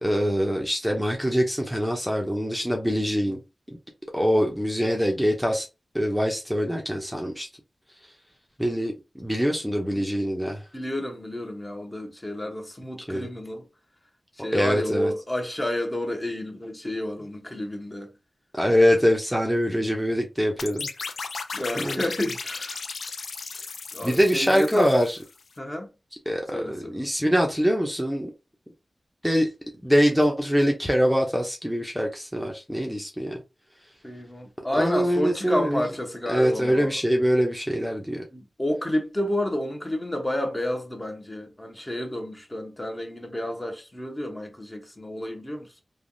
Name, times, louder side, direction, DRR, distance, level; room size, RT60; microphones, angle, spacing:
voice 1, 0.0-3.4 4.1-5.7 5.9-7.5 8.6-10.6 13.1-13.3 14.5-15.1 18.5-20.9 21.8-22.0 24.0-25.2 26.3-28.3 29.2-29.5 29.8-33.4 34.8-35.8 36.3-38.2, equal, ahead, 0.7 m, -24 dB
voice 2, 10.7-13.6 14.3-18.1 21.5-22.9 23.9-24.9 25.6-25.9 26.5-27.0 34.0-37.0 38.3-45.8, left 1 dB, 25° left, 0.9 m, -30 dB
sound 1, 20.6-25.4, left 4 dB, 85° left, 0.3 m, -35 dB
3.3 x 2.2 x 2.6 m
cardioid pair, 55°, 0 cm